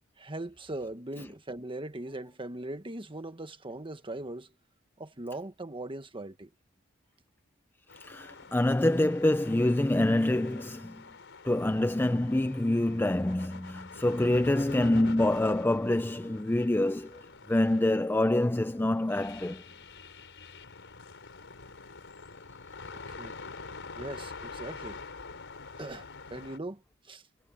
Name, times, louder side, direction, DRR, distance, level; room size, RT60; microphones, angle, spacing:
voice 1, 0.2-4.5 5.0-6.5 22.9-23.4 24.0-25.0 25.8-26.0 26.3-27.2, right 2 dB, 25° right, 1.5 m, -40 dB
sound 1, 7.9-26.6, left 4 dB, 60° left, 4.9 m, -46 dB
voice 2, 8.0-11.0 11.4-17.2 17.5-19.6, left 1 dB, 10° left, 0.5 m, -26 dB
head